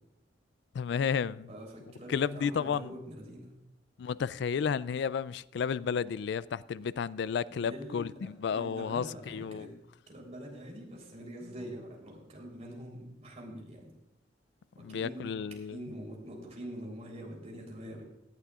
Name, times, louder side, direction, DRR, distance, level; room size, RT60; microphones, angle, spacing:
voice 1, 0.7-1.5 2.1-2.9 4.0-9.7 14.8-15.8, left 6 dB, 65° left, 0.3 m, -32 dB
voice 2, 1.5-3.5 7.5-8.1 8.5-9.7 10.1-13.9 14.8-18.0, equal, 35° right, 3.6 m, -44 dB
18.0 x 11.5 x 2.4 m
head